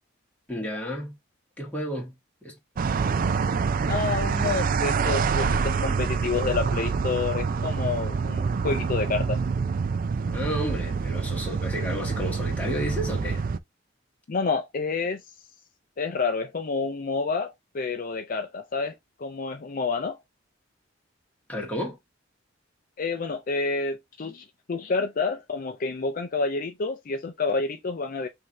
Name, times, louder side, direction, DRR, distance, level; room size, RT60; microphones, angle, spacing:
voice 1, 0.5-1.2 1.6-2.1 2.4-2.6 10.3-13.5 21.5-22.0, equal, 10° left, 1.6 m, -32 dB
sound 1, 2.8-13.6, right 5 dB, 45° right, 0.4 m, -26 dB
voice 2, 3.9-9.4 14.3-15.2 16.0-20.2 23.0-28.3, left 4 dB, 45° left, 0.5 m, -29 dB
5.4 x 2.7 x 2.9 m
head